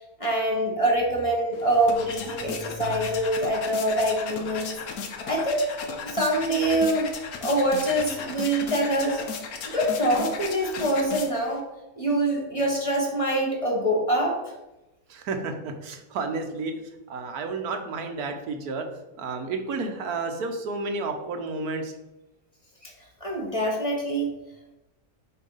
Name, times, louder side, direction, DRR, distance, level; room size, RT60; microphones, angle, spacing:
voice 1, 0.2-4.7 5.2-5.7 6.0-7.1 7.4-9.2 9.7-11.6 12.0-14.4 22.8-22.9 23.2-24.3, right 1 dB, 25° left, -1 dB, 1.1 m, -24 dB
sound 1, 1.5-11.6, left 5 dB, 75° left, 1.3 m, -36 dB
voice 2, 15.1-16.7 17.1-18.9 19.2-21.9, right 3 dB, 80° right, 5 dB, 1.3 m, -31 dB
6.9 x 2.8 x 5.4 m, 0.99 s
omnidirectional pair, 1.6 m